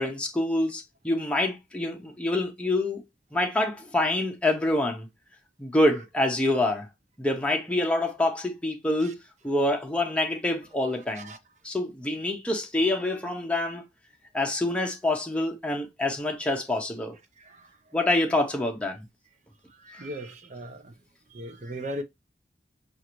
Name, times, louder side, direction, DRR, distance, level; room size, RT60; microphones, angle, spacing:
voice 1, 0.0-3.0 3.3-5.1 5.6-6.9 7.2-9.1 9.4-11.3 11.6-13.8 14.3-17.2 17.9-19.0, left 1 dB, 5° left, 0.7 m, -26 dB
voice 2, 19.8-20.9 21.3-22.0, equal, 45° right, 0.6 m, -37 dB
6.3 x 2.5 x 2.9 m
head